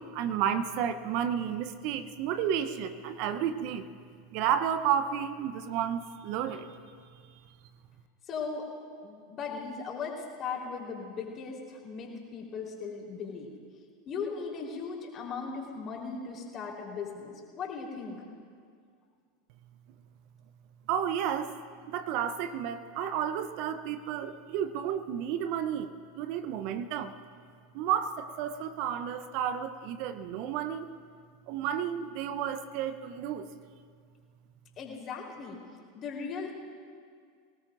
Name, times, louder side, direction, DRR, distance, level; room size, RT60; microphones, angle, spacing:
voice 1, 0.0-3.9 4.3-6.8 20.9-21.6 21.9-27.2 27.7-30.9 31.5-33.5, right 9 dB, 55° right, 11 dB, 0.8 m, -32 dB
voice 2, 8.3-8.7 9.0-13.5 14.1-18.2 34.8-35.6 35.9-36.5, left 5 dB, 35° left, -1 dB, 4.0 m, -38 dB
24.0 x 18.5 x 2.6 m, 2.1 s
hypercardioid pair, 85°, 0 cm